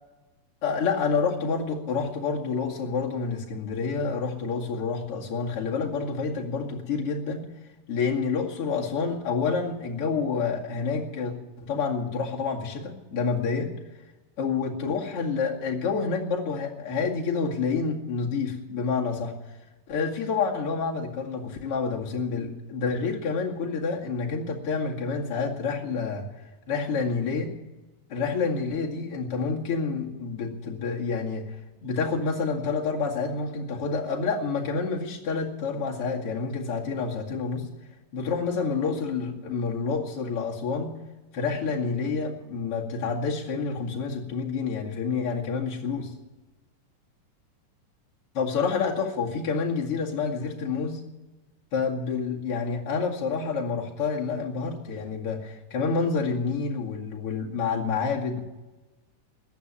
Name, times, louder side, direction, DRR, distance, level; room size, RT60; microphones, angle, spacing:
voice 1, 0.6-7.4 7.9-13.7 14.4-19.3 19.9-26.3 26.7-27.5 28.1-31.5 31.8-37.7 38.1-41.0 41.3-46.1 48.3-51.0 51.7-58.4, left 5 dB, 50° left, -2 dB, 3.0 m, -28 dB
14.5 x 11.0 x 8.7 m, 1.1 s
omnidirectional pair, 3.6 m